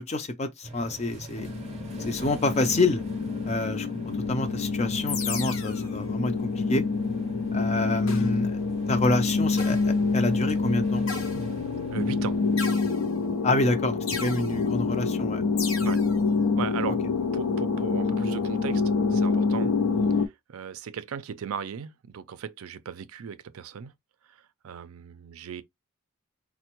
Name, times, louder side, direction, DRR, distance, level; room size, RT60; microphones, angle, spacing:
voice 1, 0.0-1.5 2.1-3.0 3.4-3.9 4.3-6.8 7.5-8.5 8.9-11.1 13.4-15.4, left 2 dB, 30° left, 0.4 m, -27 dB
sound 1, 0.6-12.8, right 2 dB, 30° right, 0.6 m, -42 dB
sound 2, 1.4-20.3, left 4 dB, 85° left, 0.5 m, -27 dB
sound 3, 5.1-5.9 8.1-8.6 9.6-10.1 11.1-11.8 12.6-13.3 14.1-14.6 15.6-16.2, left 4 dB, 60° left, 0.8 m, -36 dB
voice 2, 11.9-12.4 15.8-16.0 16.6-17.0 17.3-18.8 19.1-19.7 20.1-23.9 24.2-25.6, right 7 dB, 70° right, 0.4 m, -37 dB
4.3 x 2.1 x 2.9 m
head